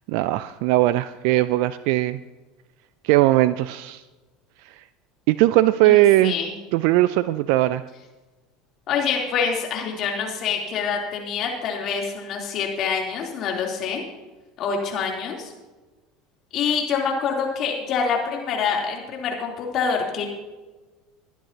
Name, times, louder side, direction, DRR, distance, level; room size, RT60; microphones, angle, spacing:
voice 1, 0.1-2.2 3.0-4.0 4.6-4.8 5.3-6.4 6.7-7.8, right 16 dB, 65° right, 16 dB, 0.3 m, -19 dB
voice 2, 5.8-6.5 8.9-14.0 14.6-15.5 16.5-20.3, left 6 dB, 50° left, 0 dB, 3.3 m, -26 dB
21.5 x 10.0 x 2.9 m, 1.2 s
hypercardioid pair, 75°, 0 cm